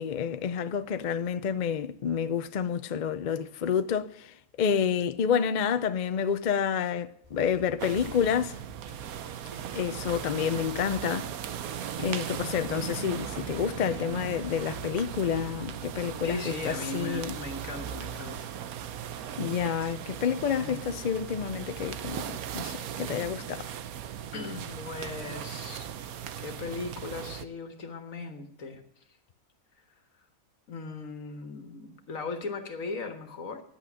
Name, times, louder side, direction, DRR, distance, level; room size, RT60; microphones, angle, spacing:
voice 1, 0.0-8.5 9.7-11.3 12.0-17.3 19.4-23.7, left 7 dB, 55° left, 0.5 m, -29 dB
sound 1, 7.2-17.5, right 1 dB, 15° right, 3.1 m, -51 dB
sound 2, 7.8-27.4, right 9 dB, 85° right, 1.2 m, -38 dB
voice 2, 16.2-18.5 20.6-20.8 24.3-25.9 26.4-28.8 30.7-33.6, left 3 dB, 70° left, 1.8 m, -38 dB
10.5 x 8.5 x 8.9 m
omnidirectional pair, 1.5 m